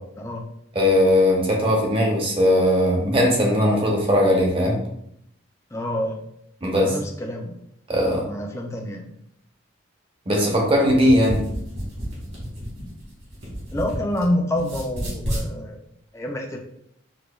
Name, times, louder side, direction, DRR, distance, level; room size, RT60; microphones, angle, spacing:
voice 1, 0.2-0.5 5.7-6.2 6.8-7.6 8.2-9.1 13.7-15.8 16.1-16.6, left 1 dB, 15° left, 1 dB, 0.3 m, -27 dB
voice 2, 0.7-4.8 6.6-6.9 7.9-8.2 10.3-11.4, equal, 25° right, -1 dB, 0.6 m, -19 dB
sound 1, 10.9-14.2 14.5-15.5, equal, 55° right, 1.5 m, -31 dB
4.8 x 2.2 x 2.2 m, 0.74 s
head